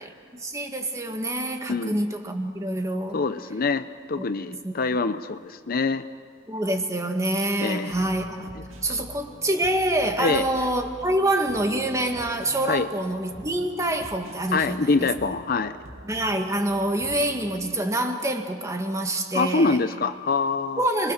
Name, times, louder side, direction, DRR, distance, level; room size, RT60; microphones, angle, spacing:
voice 1, 0.3-3.2 4.2-4.7 6.5-8.5 8.8-15.1 16.0-19.8 20.8-21.1, right 1 dB, 15° right, 4 dB, 1.8 m, -26 dB
voice 2, 3.1-6.0 7.6-7.9 8.9-9.0 10.2-10.4 12.7-12.9 14.5-15.7 19.3-20.8, left 4 dB, 45° left, 11 dB, 0.6 m, -25 dB
sound 1, 7.9-17.5, right 1 dB, 80° right, 2.3 m, -45 dB
30.0 x 22.0 x 6.5 m, 2.1 s
head